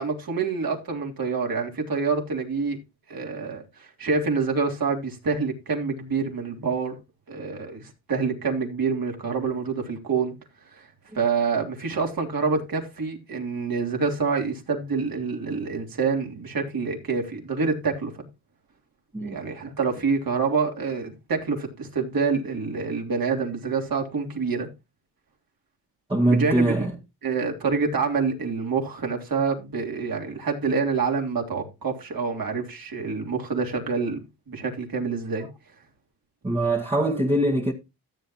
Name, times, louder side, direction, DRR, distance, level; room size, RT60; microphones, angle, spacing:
voice 1, 0.0-2.8 3.1-7.0 7.3-10.3 10.6-18.1 19.2-24.7 26.3-26.7 27.2-34.2 34.5-35.5, right 5 dB, 50° right, 3.4 m, -27 dB
voice 2, 26.1-26.9 36.4-37.7, right 1 dB, 10° right, 1.8 m, -22 dB
14.5 x 7.8 x 3.0 m
supercardioid pair, 65°, 46 cm